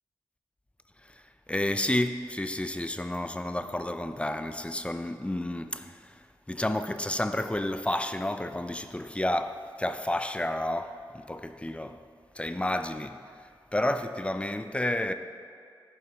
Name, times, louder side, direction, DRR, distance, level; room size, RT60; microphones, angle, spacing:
voice 1, 1.0-12.0 12.3-15.1, left 1 dB, 10° left, 0.4 m, -31 dB
5.7 x 4.7 x 5.6 m
cardioid pair, 45°, 9 cm